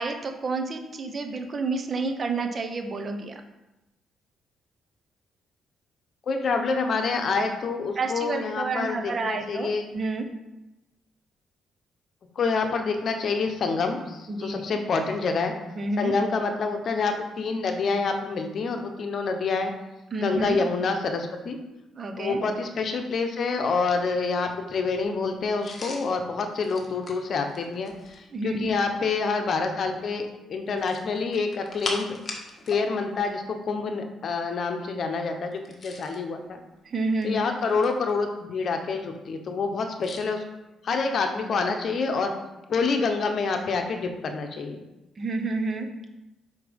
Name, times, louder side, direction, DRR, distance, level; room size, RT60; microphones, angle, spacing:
voice 1, 0.0-3.3 8.0-10.3 14.3-14.8 15.8-16.1 20.1-20.6 21.9-22.4 28.3-28.8 36.8-37.5 45.2-45.9, right 3 dB, 40° right, 5 dB, 1.0 m, -29 dB
voice 2, 6.3-9.8 12.3-15.5 16.0-19.7 20.2-21.6 22.2-32.2 32.7-36.6 37.2-40.4 40.8-42.3 42.7-44.8, left 4 dB, 55° left, 5 dB, 1.0 m, -27 dB
sound 1, 25.6-28.3 30.7-32.8 33.1-33.3 35.5-36.2 37.0-38.1 40.0-40.3, left 2 dB, 35° left, 1.5 m, -39 dB
5.9 x 5.5 x 5.2 m, 0.98 s
cardioid pair, 90°, 0 cm